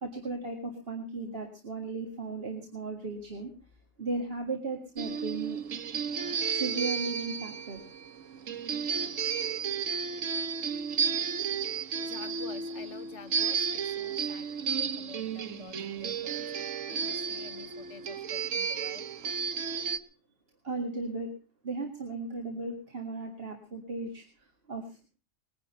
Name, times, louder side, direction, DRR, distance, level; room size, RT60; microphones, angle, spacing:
voice 1, 0.0-3.5 4.0-5.6 6.0-7.8 9.3-9.4 20.6-21.3 21.6-25.1, right 3 dB, 45° right, 3 dB, 2.1 m, -36 dB
sound 1, 5.0-20.0, right 6 dB, 70° right, 1.3 m, -33 dB
voice 2, 12.0-19.1, left 7 dB, 60° left, 8 dB, 1.4 m, -49 dB
21.0 x 10.5 x 5.5 m, 0.36 s
omnidirectional pair, 1.4 m